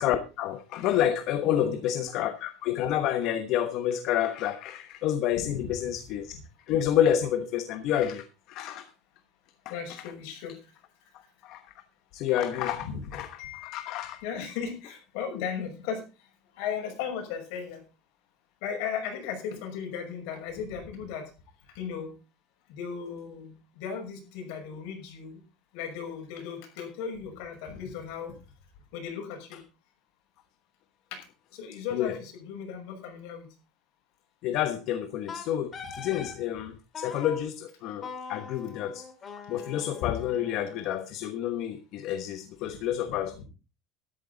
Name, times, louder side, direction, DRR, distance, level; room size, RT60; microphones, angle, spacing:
voice 1, 0.0-6.4 6.7-8.8 11.4-11.6 12.1-14.2 31.9-32.1 34.4-39.0 39.5-43.3, left 10 dB, 50° left, 1.2 m, -29 dB
voice 2, 1.4-1.8 5.4-5.7 6.3-6.4 9.7-10.6 12.8-13.0 13.4-16.0 16.5-17.8 18.6-21.3 21.7-22.1 22.7-25.4 25.7-28.3 28.9-29.6 31.1-31.2 31.5-33.5 42.6-42.8 43.0-43.4, left 7 dB, 65° left, 5.9 m, -36 dB
Wind instrument woodwind instrument, 35.3-36.4 36.9-37.4 38.0-41.0, left 5 dB, 25° left, 2.3 m, -42 dB
13.5 x 11.0 x 4.0 m
cardioid pair, 160°, 0 cm